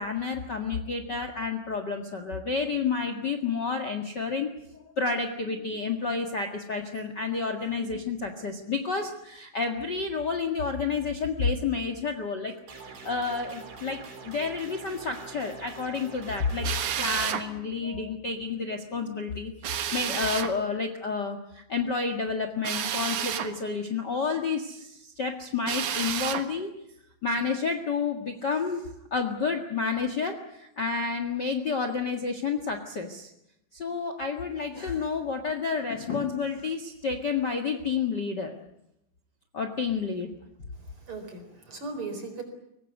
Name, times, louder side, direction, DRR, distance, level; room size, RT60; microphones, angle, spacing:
voice 1, 0.0-12.5 12.8-16.7 17.0-26.7 27.2-33.3 33.7-38.5 39.5-40.3, left 4 dB, 65° left, 7 dB, 1.0 m, -30 dB
sound 1, 12.7-17.1, right 5 dB, 85° right, 6.4 m, -45 dB
Drill, 16.6-17.5 19.6-20.5 22.6-23.5 25.6-26.5, right 9 dB, 60° right, 2.2 m, -30 dB
voice 2, 40.8-42.4, right 3 dB, 30° right, 7 dB, 4.8 m, -38 dB
24.0 x 19.0 x 9.5 m, 0.80 s
omnidirectional pair, 5.1 m